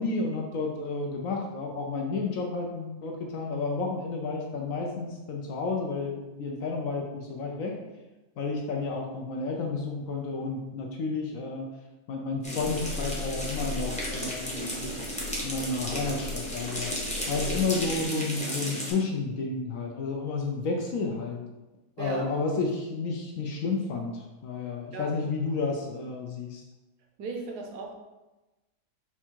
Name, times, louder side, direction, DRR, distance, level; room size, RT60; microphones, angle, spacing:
voice 1, 0.0-7.7 8.4-11.7 12.1-15.0 15.4-16.9 17.3-21.4 22.0-26.6, left 3 dB, 65° left, 1 dB, 0.9 m, -31 dB
sound 1, 12.4-18.9, equal, 5° left, 0.6 m, -34 dB
sound 2, 12.6-18.0, left 2 dB, 90° left, 1.4 m, -39 dB
voice 2, 22.0-22.3 24.9-25.1 27.2-28.0, right 3 dB, 75° right, 2 dB, 1.2 m, -36 dB
4.5 x 2.4 x 4.4 m, 1.1 s
omnidirectional pair, 1.7 m